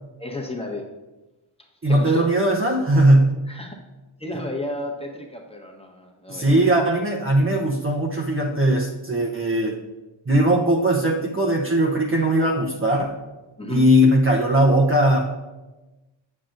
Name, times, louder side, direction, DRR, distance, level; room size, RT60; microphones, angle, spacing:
voice 1, 0.2-0.9 1.9-2.3 3.5-3.8 4.2-6.7 13.6-13.8, left 2 dB, 10° left, 1 dB, 1.2 m, -33 dB
voice 2, 1.8-3.3 6.3-9.8 10.3-13.1 13.7-15.3, right 1 dB, 25° right, -2 dB, 0.8 m, -19 dB
8.3 x 7.4 x 2.6 m, 1.1 s
cardioid pair, 65°, 49 cm